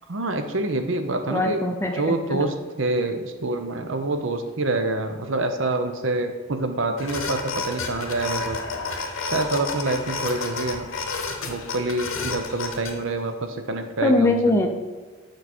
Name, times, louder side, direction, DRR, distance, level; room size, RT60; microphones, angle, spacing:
voice 1, 0.1-1.6 2.0-8.6 9.2-10.9 11.4-14.3, right 2 dB, 60° right, 7 dB, 0.7 m, -26 dB
voice 2, 1.3-2.4 14.0-14.7, left 2 dB, 10° left, 3 dB, 0.5 m, -22 dB
sound 1, 7.0-12.9, left 4 dB, 70° left, 0.9 m, -30 dB
6.7 x 4.8 x 4.3 m, 1.4 s
head